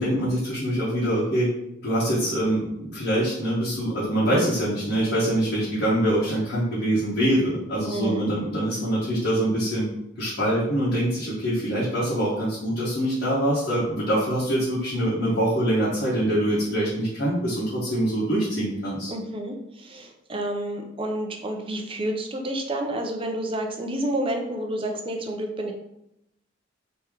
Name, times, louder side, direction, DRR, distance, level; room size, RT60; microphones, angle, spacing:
voice 1, 0.0-1.5 1.8-9.9 10.2-19.1, right 1 dB, 65° left, -8 dB, 1.0 m, -24 dB
voice 2, 7.9-8.3 19.1-25.7, right 1 dB, 30° right, 3 dB, 0.5 m, -29 dB
3.0 x 2.9 x 3.6 m, 0.81 s
head